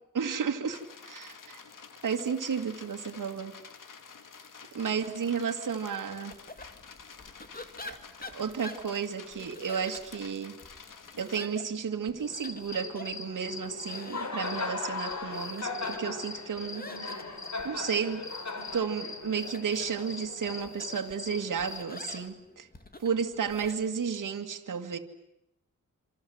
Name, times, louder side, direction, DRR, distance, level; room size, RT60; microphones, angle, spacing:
voice 1, 0.1-1.6 2.0-3.5 4.7-6.4 7.8-10.5 11.2-16.9 17.6-18.2 18.7-22.7 23.0-25.0, right 6 dB, 75° right, 5 dB, 2.3 m, -32 dB
sound 1, 0.7-11.4, left 6 dB, 80° left, 2.6 m, -50 dB
sound 2, 6.3-23.7, left 2 dB, 30° left, 2.7 m, -49 dB
Cricket, 12.2-22.3, left 3 dB, 60° left, 3.9 m, -38 dB
27.5 x 27.0 x 8.0 m, 0.85 s
cardioid pair, 65°, 31 cm